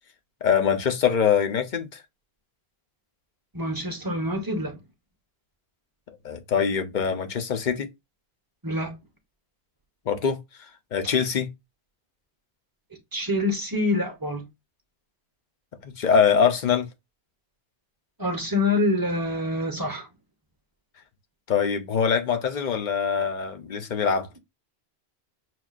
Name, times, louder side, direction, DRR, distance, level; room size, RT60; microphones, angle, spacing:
voice 1, 0.4-2.0 6.2-7.9 10.1-10.4 10.9-11.5 15.8-16.9 21.5-24.3, left 7 dB, 50° left, 0.7 m, -23 dB
voice 2, 3.5-4.8 8.6-8.9 13.1-14.4 18.2-20.1, left 2 dB, 20° right, 0.7 m, -26 dB
5.9 x 2.4 x 2.4 m
omnidirectional pair, 1.1 m